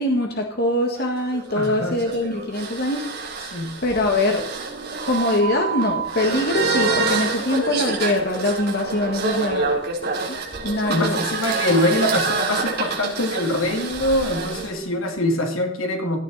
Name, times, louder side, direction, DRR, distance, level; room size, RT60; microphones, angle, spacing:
voice 1, 0.0-3.3 3.8-4.5 5.0-9.7 10.3-10.4 10.6-11.2, left 1 dB, 50° left, 3 dB, 1.8 m, -23 dB
sound 1, 1.0-14.7, right 4 dB, 50° right, 3.7 m, -27 dB
voice 2, 1.5-2.0 3.5-3.7 10.9-16.2, left 1 dB, 80° left, 3 dB, 2.8 m, -23 dB
17.0 x 13.5 x 4.2 m, 0.66 s
head